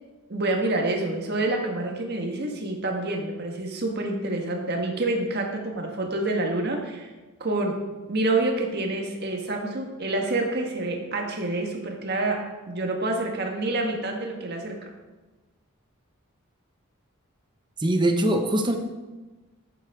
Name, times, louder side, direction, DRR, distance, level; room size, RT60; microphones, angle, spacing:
voice 1, 0.3-7.1 7.4-7.8 8.1-12.4 12.7-14.9, right 2 dB, 45° right, 1 dB, 1.6 m, -27 dB
voice 2, 17.8-18.8, right 1 dB, 20° right, 5 dB, 0.8 m, -22 dB
11.5 x 8.9 x 3.7 m, 1.2 s
head